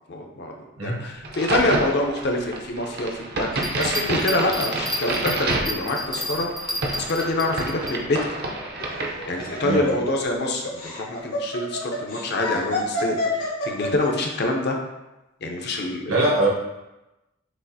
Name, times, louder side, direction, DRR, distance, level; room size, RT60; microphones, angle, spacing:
voice 1, 0.1-0.5 0.8-6.5 6.9-8.2 9.2-14.8 15.4-16.2, left 2 dB, 50° left, 1 dB, 0.5 m, -26 dB
Crack, 1.2-9.8, right 2 dB, 50° right, 0.6 m, -29 dB
Bell, 3.5-8.0 8.4-8.5, equal, ahead, 0.3 m, -31 dB
Laughter, 8.8-14.3, left 1 dB, 80° left, 1.2 m, -29 dB
voice 2, 16.1-16.5, right 2 dB, 75° right, -4 dB, 1.2 m, -21 dB
6.1 x 2.4 x 2.7 m, 0.98 s
head